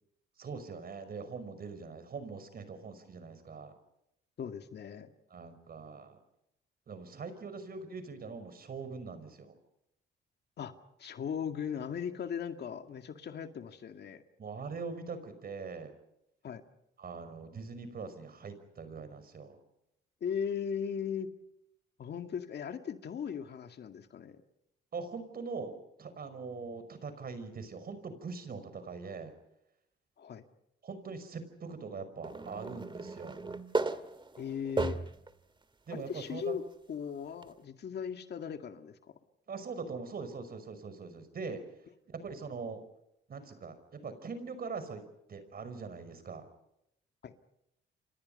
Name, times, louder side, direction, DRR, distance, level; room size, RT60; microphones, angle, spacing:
voice 1, 0.4-3.7 5.3-6.2 6.9-9.6 14.4-15.9 17.0-19.6 24.9-25.7 26.0-29.3 30.8-33.4 35.9-36.5 39.5-41.6 42.1-42.8 43.3-45.0 45.3-46.5, right 4 dB, 50° right, 11 dB, 5.5 m, -42 dB
voice 2, 4.4-5.1 10.6-10.7 11.0-14.2 16.4-16.6 20.2-21.3 22.0-24.4 30.2-30.5 34.4-35.0 35.9-36.6 36.9-39.0 47.2-47.3, left 7 dB, 55° left, 7 dB, 2.2 m, -38 dB
sound 1, 32.2-35.3 35.9-36.0 37.4-37.5, right 3 dB, 25° right, 1.9 m, -35 dB
30.0 x 25.5 x 5.5 m, 0.81 s
cardioid pair, 90°, 20 cm